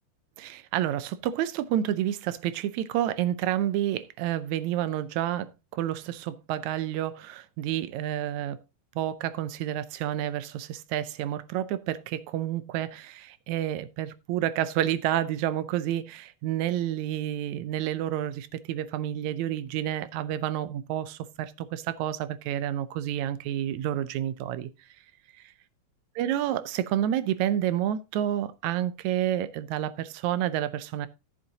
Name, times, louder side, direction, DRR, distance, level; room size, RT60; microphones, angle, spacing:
voice 1, 0.4-8.6 9.0-24.7 26.2-31.1, right 11 dB, 80° right, 2.0 m, -29 dB
14.5 x 7.4 x 2.8 m
omnidirectional pair, 3.3 m